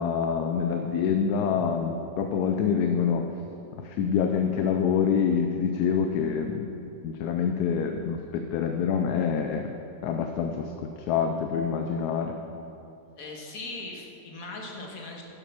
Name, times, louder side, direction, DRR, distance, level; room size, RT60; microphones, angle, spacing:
voice 1, 0.0-3.3 3.7-6.7 7.0-9.7 10.0-12.3, left 7 dB, 70° left, 5 dB, 1.1 m, -26 dB
voice 2, 13.2-15.2, left 2 dB, 55° left, 0 dB, 1.8 m, -39 dB
10.5 x 7.4 x 6.0 m, 2.8 s
omnidirectional pair, 1.9 m